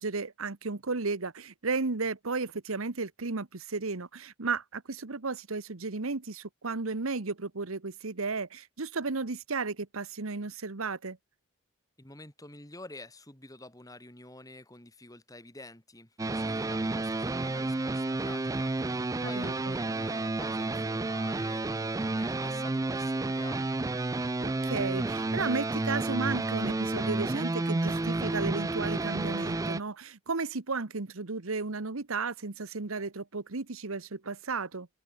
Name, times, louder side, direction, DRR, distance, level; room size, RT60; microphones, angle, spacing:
voice 1, 0.0-11.2 19.2-19.8 24.4-34.9, right 4 dB, 80° right, 1.2 m, -34 dB
voice 2, 12.0-23.7, left 2 dB, 15° left, 3.4 m, -49 dB
sound 1, 16.2-29.8, right 2 dB, 15° right, 0.3 m, -31 dB
head